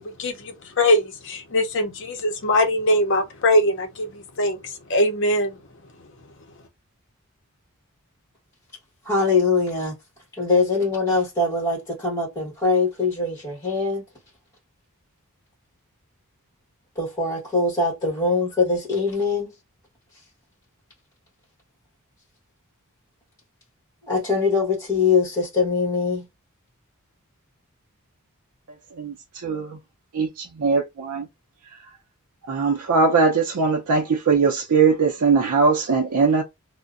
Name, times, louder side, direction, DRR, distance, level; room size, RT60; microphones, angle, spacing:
voice 1, 0.0-5.6, left 1 dB, 55° left, 0.6 m, -22 dB
voice 2, 9.0-10.0 10.4-14.0 16.9-19.5 24.0-26.2, left 4 dB, 15° left, 1.1 m, -22 dB
voice 3, 29.0-29.8 30.1-31.3 32.5-36.4, right 4 dB, 75° right, 0.5 m, -20 dB
2.6 x 2.1 x 2.4 m
head